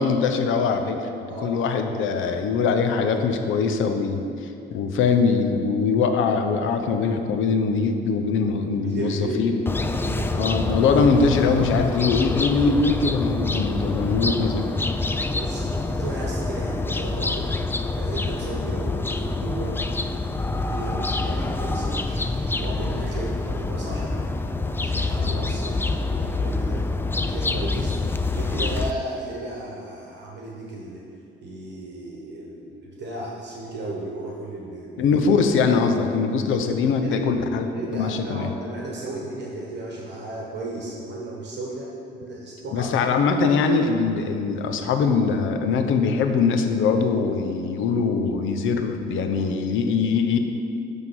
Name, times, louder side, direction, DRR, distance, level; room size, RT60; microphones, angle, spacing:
voice 1, 0.0-1.1 1.4-9.6 10.3-14.7 19.4-19.6 35.0-38.5 42.7-50.4, left 5 dB, 80° left, 6 dB, 0.7 m, -22 dB
voice 2, 1.3-1.6 1.9-2.1 8.4-9.5 10.0-10.4 15.2-17.5 17.9-19.8 20.5-24.1 24.8-26.9 27.2-28.0 28.3-31.0 31.4-35.1 37.0-37.3 37.7-42.9, right 2 dB, 60° right, -2 dB, 1.2 m, -35 dB
sound 1, 9.7-28.9, left 3 dB, 10° left, 0.4 m, -26 dB
9.7 x 3.6 x 6.1 m, 2.5 s
cardioid pair, 90°, 20 cm